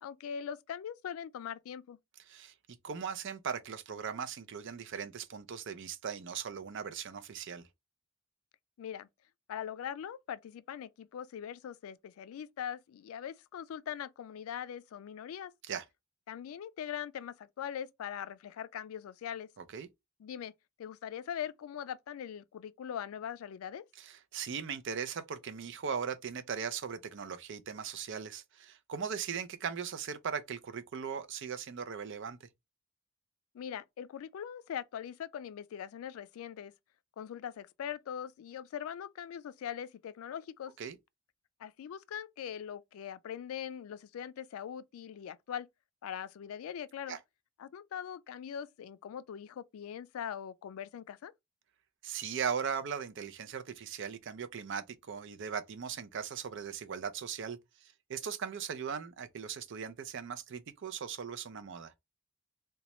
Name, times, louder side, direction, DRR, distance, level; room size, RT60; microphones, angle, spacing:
voice 1, 0.0-2.0 8.8-9.1 9.5-15.5 16.3-19.5 20.2-20.5 20.8-23.8 33.5-36.7 37.2-40.7 41.6-45.7 46.0-47.2 47.6-51.3, left 9 dB, 85° left, 0.3 m, -41 dB
voice 2, 2.8-7.7 15.6-15.8 19.7-19.9 24.0-32.5 40.8-41.0 47.1-47.2 52.0-61.9, right 7 dB, 60° right, 0.5 m, -39 dB
3.0 x 2.2 x 4.0 m
head